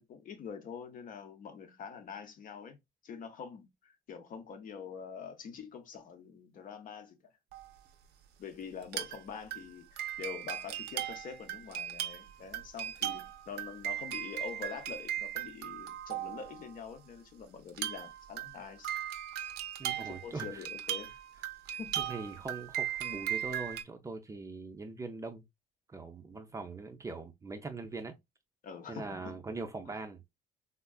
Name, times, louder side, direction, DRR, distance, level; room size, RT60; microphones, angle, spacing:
voice 1, 0.0-2.8 3.0-7.2 8.4-18.9 20.0-21.1 21.8-22.0 28.6-29.4, left 6 dB, 55° left, 0.7 m, -45 dB
sound 1, 7.5-7.7 8.8-9.2 9.5-16.7 17.7-23.8, right 11 dB, 80° right, 0.5 m, -38 dB
voice 2, 19.8-20.6 22.0-25.4 25.9-28.2 28.9-30.2, right 3 dB, 20° right, 0.4 m, -41 dB
3.6 x 2.3 x 2.2 m
cardioid pair, 110°, 17 cm